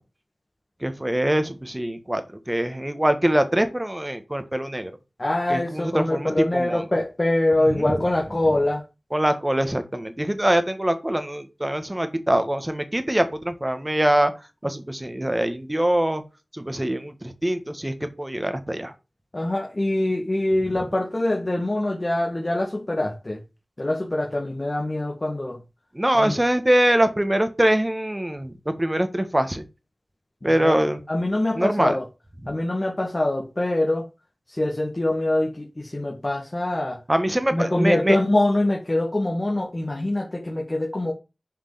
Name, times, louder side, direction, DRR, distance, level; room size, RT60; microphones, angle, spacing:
voice 1, 0.8-2.2 2.5-4.9 5.5-6.9 7.7-7.9 9.1-14.3 14.6-16.2 16.5-18.9 25.9-29.6 30.4-31.0 31.6-32.0 32.4-32.5 37.1-38.2, right 1 dB, 20° right, 1.7 m, -23 dB
voice 2, 5.2-8.8 19.3-23.4 23.8-25.6 26.1-26.4 30.4-30.8 31.1-32.1 32.5-34.1 34.5-37.0 37.5-41.1, left 1 dB, 35° left, 2.0 m, -24 dB
7.6 x 5.2 x 7.0 m
wide cardioid pair, 50°, 0 cm